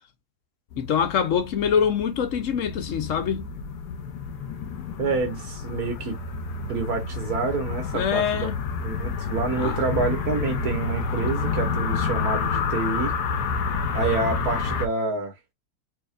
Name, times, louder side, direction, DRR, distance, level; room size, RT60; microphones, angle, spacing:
sound 1, 0.7-14.9, left 5 dB, 90° left, 1.4 m, -29 dB
voice 1, 0.8-3.5 7.9-8.6 9.6-9.8 10.4-10.5, left 7 dB, 60° left, 0.9 m, -24 dB
voice 2, 5.0-6.1 6.7-8.5 8.8-13.1 13.9-15.3, right 3 dB, 70° right, 1.6 m, -28 dB
4.7 x 2.8 x 2.4 m
omnidirectional pair, 1.7 m